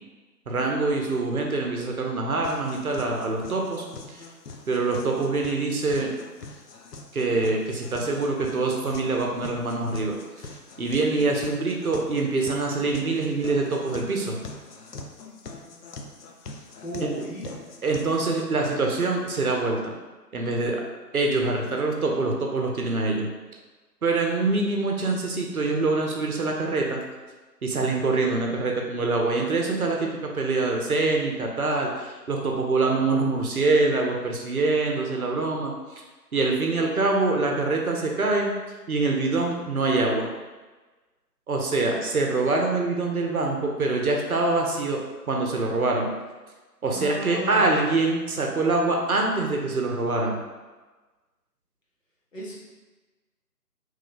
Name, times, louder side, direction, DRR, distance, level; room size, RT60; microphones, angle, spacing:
voice 1, 0.5-4.2 4.7-6.1 7.1-10.2 10.8-14.4 17.0-17.1 17.8-19.9 20.3-20.8 21.1-23.3 24.0-27.0 27.6-35.7 36.3-38.5 38.9-40.3 41.5-45.0 45.3-46.1 46.8-50.4, right 3 dB, 60° right, 1 dB, 0.7 m, -25 dB
sound 1, 2.4-18.4, left 3 dB, 75° left, 0.6 m, -43 dB
voice 2, 16.8-17.5 46.9-47.8 52.3-52.6, equal, 50° left, -5 dB, 1.0 m, -35 dB
3.0 x 2.2 x 3.8 m, 1.2 s
figure-of-eight pair, 160°, 49 cm